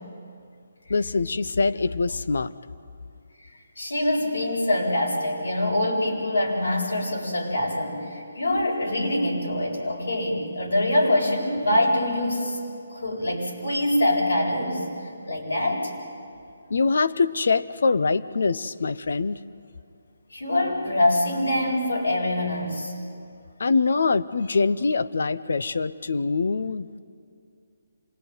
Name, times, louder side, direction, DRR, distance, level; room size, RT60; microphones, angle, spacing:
voice 1, 0.9-2.5 16.7-19.4 23.6-27.0, left 4 dB, 70° left, 14 dB, 0.8 m, -24 dB
voice 2, 3.8-12.6 12.9-14.8 15.3-15.9 20.3-22.9, left 1 dB, 90° left, -3 dB, 8.0 m, -24 dB
26.5 x 20.0 x 9.4 m, 2.5 s
hypercardioid pair, 160°, 0 cm